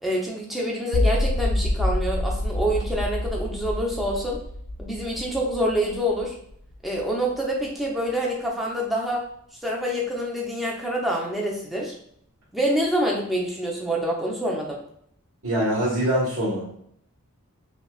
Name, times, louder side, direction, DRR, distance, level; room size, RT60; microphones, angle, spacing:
voice 1, 0.0-4.4 4.8-6.4 6.8-9.2 9.6-11.9 12.5-14.8, equal, ahead, -3 dB, 0.7 m, -26 dB
sound 1, 0.9-7.0, left 1 dB, 55° left, 0.4 m, -27 dB
voice 2, 15.4-16.7, equal, 75° right, -7 dB, 1.5 m, -24 dB
5.5 x 2.3 x 2.4 m, 0.68 s
head